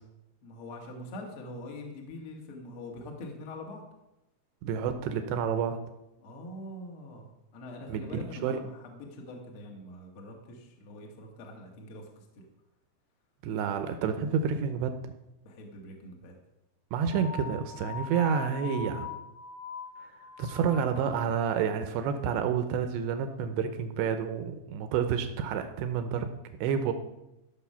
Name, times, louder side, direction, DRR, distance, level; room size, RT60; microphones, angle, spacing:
voice 1, 0.4-3.8 6.2-12.2 15.4-16.3, left 1 dB, 75° left, 1 dB, 1.2 m, -44 dB
voice 2, 4.6-5.8 7.9-8.6 13.4-15.1 16.9-19.1 20.0-20.1 20.4-26.3 26.6-26.9, right 7 dB, 80° right, 8 dB, 2.5 m, -29 dB
sound 1, 17.1-21.7, left 6 dB, 10° left, 0.9 m, -42 dB
14.0 x 6.4 x 5.6 m, 0.92 s
omnidirectional pair, 5.6 m